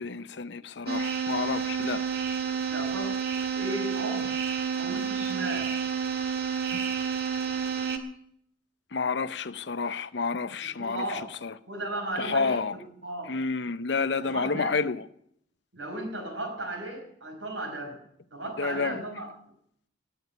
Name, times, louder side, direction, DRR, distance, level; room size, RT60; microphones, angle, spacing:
voice 1, 0.0-2.0 6.7-6.8 8.9-11.0 11.4-11.5 12.2-12.8 13.3-15.0 18.6-19.0, left 4 dB, 65° left, 0.6 m, -29 dB
sound 1, 0.9-8.0, right 6 dB, 55° right, 1.5 m, -30 dB
voice 2, 2.7-3.2 3.6-4.4 4.7-5.7 10.6-11.3 11.7-13.4 14.2-14.8 15.7-18.0 18.3-19.3, right 1 dB, 90° right, 5.1 m, -35 dB
18.0 x 7.0 x 8.2 m
head